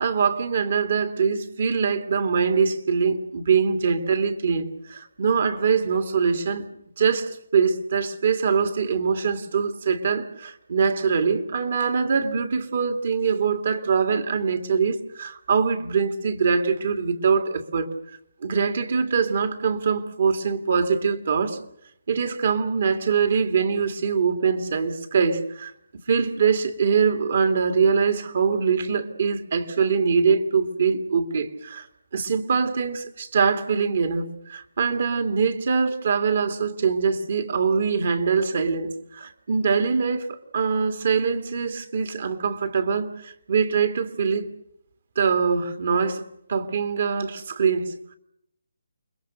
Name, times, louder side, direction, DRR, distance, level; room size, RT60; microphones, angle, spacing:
voice 1, 0.0-6.7 7.0-17.9 18.4-21.6 22.1-25.7 26.1-44.5 45.2-46.2 46.5-48.1, right 5 dB, 55° right, 2.7 m, -23 dB
29.0 x 22.0 x 6.6 m
hypercardioid pair, 160°, 0 cm